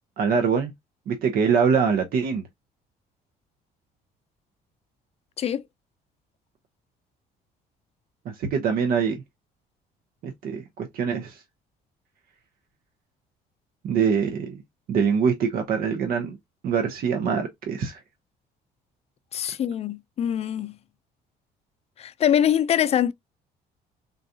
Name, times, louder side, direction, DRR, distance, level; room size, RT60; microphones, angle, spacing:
voice 1, 0.2-0.7 1.1-2.4 8.3-9.2 10.2-11.4 13.8-14.6 14.9-16.4 16.6-18.0, right 6 dB, 60° right, 0.8 m, -24 dB
voice 2, 19.3-20.7 22.0-23.1, left 10 dB, 40° left, 0.4 m, -23 dB
3.8 x 2.3 x 2.7 m
cardioid pair, 110°, 17 cm